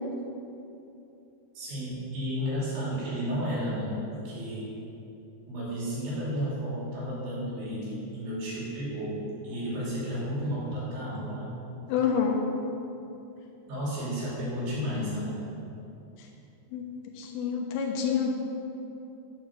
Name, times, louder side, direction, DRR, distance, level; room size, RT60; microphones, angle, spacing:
voice 1, 1.5-4.7 5.5-11.6 13.7-15.4, equal, 50° right, -7 dB, 4.2 m, -32 dB
voice 2, 11.9-12.4 16.7-16.8 17.1-18.3, left 7 dB, 85° left, 0 dB, 3.7 m, -27 dB
9.2 x 8.8 x 6.7 m, 2.8 s
omnidirectional pair, 5.9 m